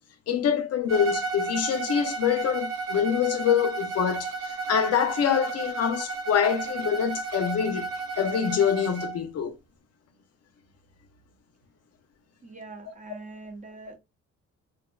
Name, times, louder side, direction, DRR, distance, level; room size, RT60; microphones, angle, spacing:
voice 1, 0.3-9.5, left 8 dB, 55° left, 0.5 m, -25 dB
Bowed string instrument, 0.9-9.2, right 4 dB, 65° right, 0.9 m, -33 dB
voice 2, 12.4-14.0, right 3 dB, 25° right, 0.7 m, -43 dB
2.6 x 2.1 x 2.2 m
cardioid pair, 90°, 30 cm